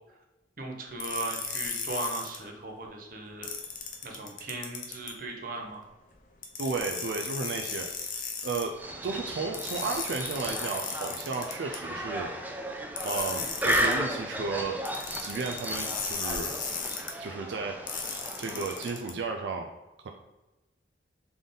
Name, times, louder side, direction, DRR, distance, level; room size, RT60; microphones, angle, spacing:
voice 1, 0.6-3.5 4.0-5.8, right 3 dB, 50° right, 1 dB, 0.8 m, -37 dB
sound 1, 1.0-2.4 3.4-5.1 6.4-8.7 9.5-11.8 13.0-14.0 14.9-17.1 17.9-19.1, left 5 dB, 50° left, 0.6 m, -36 dB
voice 2, 6.6-8.1 8.4-8.8 9.0-12.3 13.0-14.8 15.2-16.6 17.2-19.7 20.0-20.1, right 4 dB, 85° right, 2 dB, 0.4 m, -33 dB
sound 2, 8.7-19.1, right 1 dB, 10° right, 0.4 m, -34 dB
3.8 x 3.5 x 3.8 m, 1.0 s
head